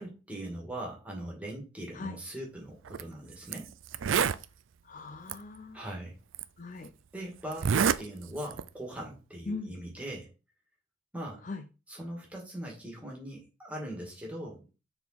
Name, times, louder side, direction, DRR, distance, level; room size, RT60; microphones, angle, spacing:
voice 1, 0.0-3.7 5.7-6.2 7.1-10.3 11.1-11.4 11.9-14.8, right 1 dB, 5° right, -1 dB, 2.0 m, -40 dB
Zipper (clothing), 2.9-3.0 3.5-3.6 3.9-4.4 5.3-5.4 6.3-6.4 7.5-8.0 8.4-8.7, right 7 dB, 75° right, 0.4 m, -27 dB
voice 2, 4.8-5.8 6.6-6.9 9.5-9.7 11.4-11.6, left 3 dB, 40° left, 8 dB, 0.5 m, -40 dB
7.0 x 3.7 x 4.1 m, 0.31 s
head